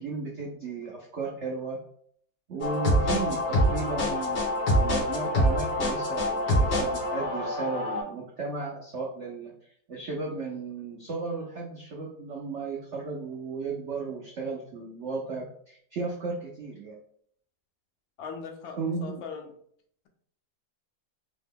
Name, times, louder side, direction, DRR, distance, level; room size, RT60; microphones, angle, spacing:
voice 1, 0.0-1.8 2.5-9.5 9.9-17.0 18.8-19.2, right 4 dB, 80° right, -2 dB, 0.6 m, -35 dB
sound 1, 2.6-8.0, equal, 65° left, 2.3 m, -25 dB
voice 2, 18.2-19.5, left 5 dB, 85° left, 3 dB, 1.5 m, -39 dB
4.8 x 2.1 x 3.6 m, 0.63 s
omnidirectional pair, 2.1 m